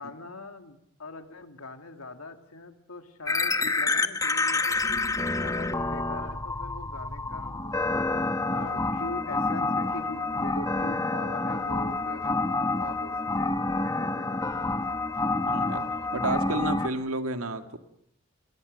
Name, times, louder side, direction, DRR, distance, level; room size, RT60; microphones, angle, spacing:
voice 1, 0.0-5.0 5.4-8.0 8.5-12.5 12.7-14.6, left 2 dB, 90° left, 7 dB, 2.4 m, -42 dB
sound 1, 3.3-16.9, left 3 dB, 15° left, 1.0 m, -28 dB
voice 2, 15.4-15.9 16.1-17.8, right 2 dB, 80° right, 8 dB, 1.9 m, -31 dB
28.5 x 21.0 x 6.6 m, 0.74 s
head